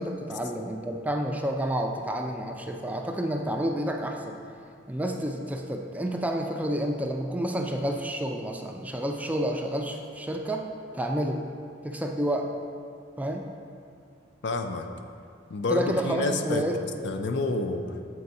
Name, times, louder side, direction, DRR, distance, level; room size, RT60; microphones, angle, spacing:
voice 1, 0.0-4.4 4.9-10.7 10.9-11.4 11.8-12.5 13.2-13.5 15.7-17.4, right 1 dB, 10° right, 2 dB, 0.4 m, -30 dB
voice 2, 14.4-14.9 15.5-16.7 17.0-18.1, left 2 dB, 65° left, 6 dB, 0.5 m, -29 dB
7.6 x 4.7 x 4.1 m, 2.3 s
head